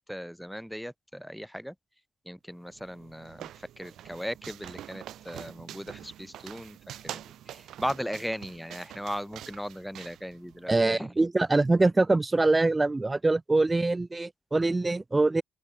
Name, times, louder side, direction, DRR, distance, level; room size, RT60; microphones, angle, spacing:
voice 1, 0.0-1.7 2.3-3.5 3.8-6.8 7.0-11.1, equal, ahead, 1.8 m, -37 dB
sound 1, 2.7-10.8, right 12 dB, 70° right, 4.0 m, -45 dB
voice 2, 10.7-15.4, right 2 dB, 25° right, 0.7 m, -24 dB
open air
hypercardioid pair, 45°, 0 cm